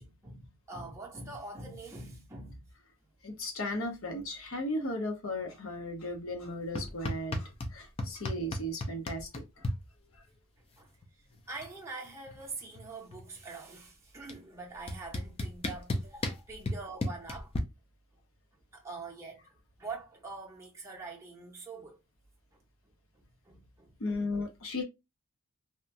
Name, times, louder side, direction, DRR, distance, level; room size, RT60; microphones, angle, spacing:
voice 1, 0.0-2.6 10.8-10.9 11.2-17.5 18.7-19.4 19.8-22.0 22.5-22.6 23.1-24.2, right 3 dB, 15° right, 0.6 m, -44 dB
voice 2, 3.2-9.7 24.0-24.8, left 1 dB, 70° left, 0.8 m, -36 dB
sound 1, 6.8-7.7 8.0-9.8 11.0-11.1 11.4-11.8 12.1-13.4 14.3-14.4 14.9-17.6, left 1 dB, 25° left, 0.4 m, -34 dB
2.8 x 2.2 x 2.5 m
head